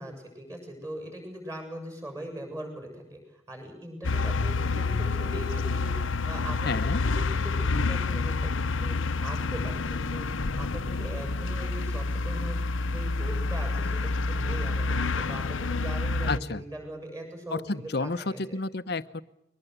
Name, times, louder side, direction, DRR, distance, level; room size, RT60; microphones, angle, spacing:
voice 1, 0.0-10.3 10.6-12.6 12.8-18.6, right 1 dB, 15° right, 4 dB, 7.1 m, -41 dB
sound 1, 4.0-16.4, left 3 dB, 80° left, 0.9 m, -28 dB
voice 2, 6.6-7.0 16.3-16.6 17.5-19.2, left 3 dB, 55° left, 14 dB, 0.8 m, -31 dB
22.5 x 20.0 x 8.0 m, 0.83 s
head